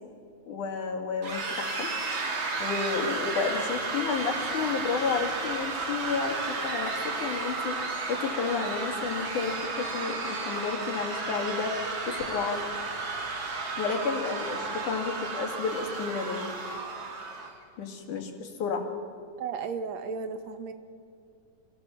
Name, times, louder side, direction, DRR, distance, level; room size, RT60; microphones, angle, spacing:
voice 1, 0.5-1.9 2.6-11.7 12.1-12.6 13.8-16.5 17.8-18.9, left 5 dB, 90° left, 3 dB, 3.8 m, -31 dB
sound 1, 1.2-17.5, right 3 dB, 40° right, 2.9 m, -33 dB
voice 2, 19.4-20.7, right 5 dB, 70° right, 9 dB, 2.3 m, -34 dB
27.5 x 17.0 x 7.3 m, 2.5 s
omnidirectional pair, 3.4 m